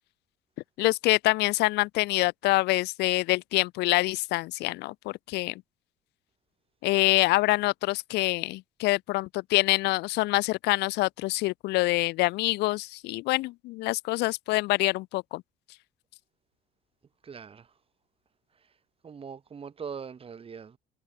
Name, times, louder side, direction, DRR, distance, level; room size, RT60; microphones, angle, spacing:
voice 1, 0.8-4.9 5.3-5.5 6.8-15.4, left 20 dB, 80° left, 0.5 m, -26 dB
voice 2, 17.2-17.7 19.0-20.8, right 6 dB, 35° right, 2.6 m, -41 dB
cardioid pair, 110°, 17 cm